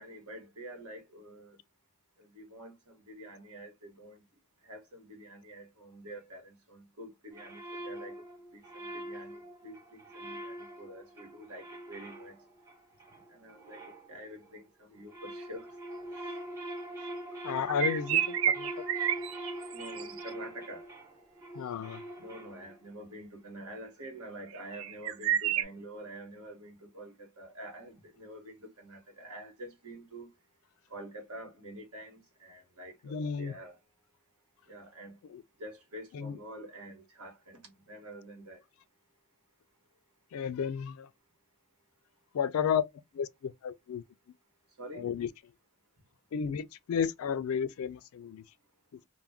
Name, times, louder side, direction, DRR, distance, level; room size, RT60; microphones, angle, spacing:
voice 1, 0.0-1.6 2.2-4.2 4.6-8.2 8.5-12.4 13.3-15.7 16.1-16.3 19.7-20.9 22.2-30.3 30.9-33.8 34.7-35.2 35.6-38.6 44.8-45.1, right 1 dB, 85° right, 1.2 m, -47 dB
sound 1, 7.3-14.6 14.9-22.9, right 1 dB, 15° right, 0.5 m, -43 dB
voice 2, 17.4-18.7 21.6-22.0 33.0-33.5 35.3-35.4 36.1-36.4 40.3-41.1 42.3-42.8 43.1-44.0 44.9-45.3 46.3-48.4, left 7 dB, 70° left, 0.3 m, -32 dB
sound 2, 17.6-20.3 24.5-25.6, right 10 dB, 65° right, 0.3 m, -30 dB
2.3 x 2.1 x 3.3 m
head